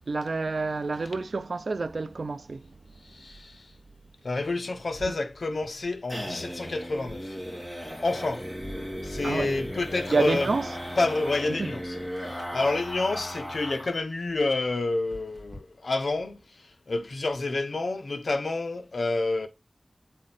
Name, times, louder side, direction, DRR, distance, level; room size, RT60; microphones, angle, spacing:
voice 1, 0.1-2.6 9.2-9.6 10.1-10.7 11.6-11.7, right 3 dB, 80° right, 0.5 m, -28 dB
voice 2, 3.1-3.6 4.2-7.4 8.0-8.4 9.0-10.5 11.0-16.4 16.9-19.5, left 2 dB, 80° left, 0.8 m, -29 dB
sound 1, 4.9-14.0 14.3-14.4 14.7-14.8 15.1-15.6, equal, 15° left, 3.0 m, -37 dB
7.6 x 4.3 x 4.1 m
wide cardioid pair, 65°, 0 cm